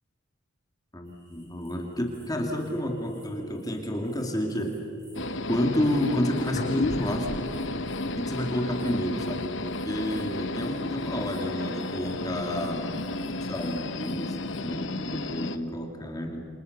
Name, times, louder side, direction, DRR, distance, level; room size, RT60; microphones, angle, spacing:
voice 1, 0.9-4.8 5.5-7.5 8.2-9.5 9.8-13.0 13.5-16.5, equal, 20° left, 2 dB, 2.4 m, -30 dB
sound 1, 1.0-14.6, right 1 dB, 20° right, 7.6 m, -60 dB
sound 2, 5.1-15.6, left 2 dB, 65° left, 1.1 m, -33 dB
sound 3, 6.5-11.4, left 2 dB, 40° left, 0.7 m, -36 dB
28.5 x 27.5 x 6.7 m, 2.8 s
head